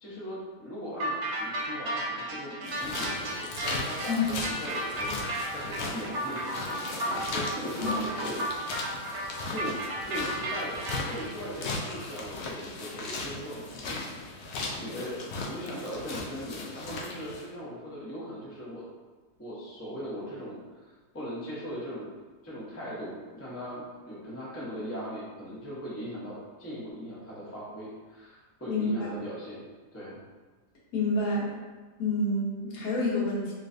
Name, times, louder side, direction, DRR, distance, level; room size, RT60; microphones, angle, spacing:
voice 1, 0.0-5.1 5.5-8.5 9.5-14.1 14.8-18.8 19.4-22.1 22.4-30.2, equal, 15° left, -8 dB, 0.5 m, -39 dB
sound 1, 1.0-11.3, right 1 dB, 70° right, 1.1 m, -34 dB
sound 2, 2.6-17.5, left 3 dB, 80° left, 0.6 m, -37 dB
voice 2, 28.6-29.1 30.9-31.5 32.0-33.5, left 2 dB, 65° left, -6 dB, 1.2 m, -28 dB
3.1 x 3.1 x 2.6 m, 1.3 s
omnidirectional pair, 1.7 m